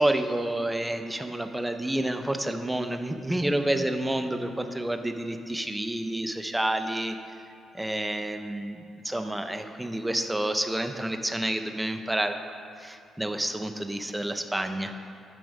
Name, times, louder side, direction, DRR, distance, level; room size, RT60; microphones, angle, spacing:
voice 1, 0.0-7.2 7.7-12.4 12.8-14.9, right 1 dB, 10° right, 7 dB, 0.6 m, -29 dB
10.5 x 7.0 x 5.3 m, 2.5 s
cardioid pair, 90°, 0 cm